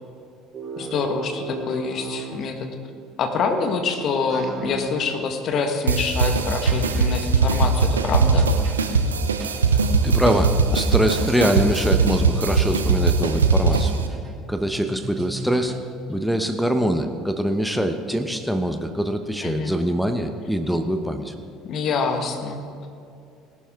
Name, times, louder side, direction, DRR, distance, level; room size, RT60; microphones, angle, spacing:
sound 1, 0.5-2.9 4.3-5.2 6.7-7.3 8.4-8.8 9.4-9.8 10.3-10.6 11.2-16.2, right 3 dB, 40° right, 1.4 m, -37 dB
voice 1, 0.8-2.7 3.2-8.5 19.4-19.7 21.6-22.6, left 4 dB, 45° left, 6 dB, 1.5 m, -26 dB
sound 2, 5.9-14.1, right 4 dB, 80° right, 0.7 m, -20 dB
voice 2, 10.0-14.0 14.5-15.8 16.1-21.3, equal, ahead, 6 dB, 1.0 m, -23 dB
19.0 x 11.5 x 3.7 m, 2.4 s
figure-of-eight pair, 60°, 0 cm